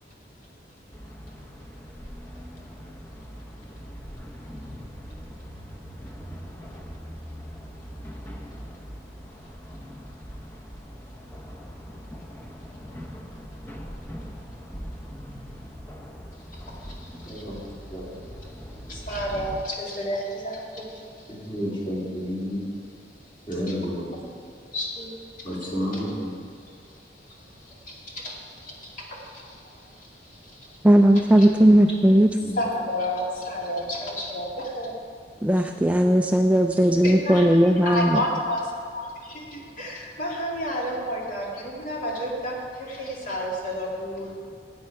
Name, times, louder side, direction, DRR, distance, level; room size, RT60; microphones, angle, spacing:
sound 1, 0.9-19.6, equal, 10° left, 0.8 m, -41 dB
voice 1, 17.3-18.1 21.3-22.6 23.5-24.1 25.4-26.3 32.3-32.5, equal, 30° left, -5 dB, 2.9 m, -31 dB
voice 2, 18.9-20.6 23.7-23.8 24.7-25.1 25.9-26.0 28.2-28.3 31.4-31.5 32.5-34.9 37.0-38.6 38.9-39.1 39.5-42.5 42.8-44.4, equal, 50° left, -3 dB, 2.3 m, -30 dB
voice 3, 30.8-32.4 35.4-38.2, equal, 10° right, 4 dB, 0.4 m, -17 dB
13.5 x 8.8 x 4.7 m, 2.3 s
head